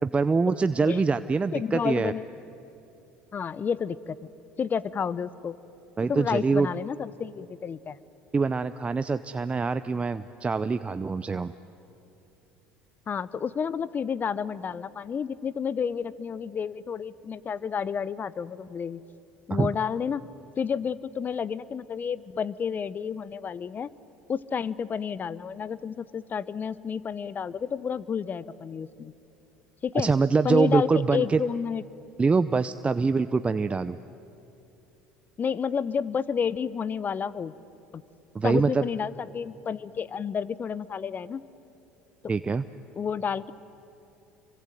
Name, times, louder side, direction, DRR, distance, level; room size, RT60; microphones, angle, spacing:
voice 1, 0.0-2.1 6.0-6.7 8.3-11.5 19.5-19.7 29.9-31.4 32.2-34.0 38.3-38.9 42.3-42.6, right 4 dB, 20° right, 12 dB, 0.7 m, -24 dB
voice 2, 1.5-2.3 3.3-4.2 4.6-5.5 6.1-8.0 13.1-19.0 19.5-20.3 20.6-23.9 24.3-29.1 29.8-30.1 30.4-31.8 35.4-37.5 37.9-38.0 38.4-41.5 43.0-43.5, left 7 dB, 35° left, 19 dB, 0.9 m, -30 dB
27.5 x 23.5 x 9.1 m, 2.8 s
hypercardioid pair, 70°, 5 cm